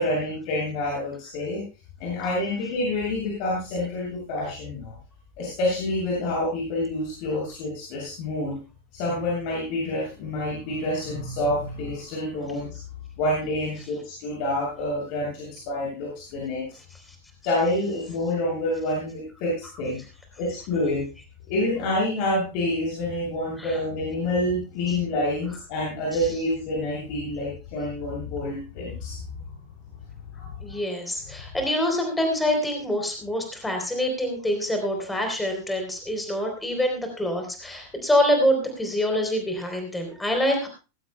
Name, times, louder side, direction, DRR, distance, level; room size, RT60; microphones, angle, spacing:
voice 1, 0.0-1.6 2.0-4.9 5.4-8.6 8.9-12.8 13.2-16.7 17.4-20.0 20.4-21.0 21.5-29.2 30.3-30.6, left 1 dB, 45° left, -4 dB, 7.4 m, -27 dB
voice 2, 30.6-40.7, equal, 5° left, 4 dB, 3.7 m, -25 dB
19.0 x 15.5 x 2.3 m, 0.31 s
figure-of-eight pair, 90°, 0 cm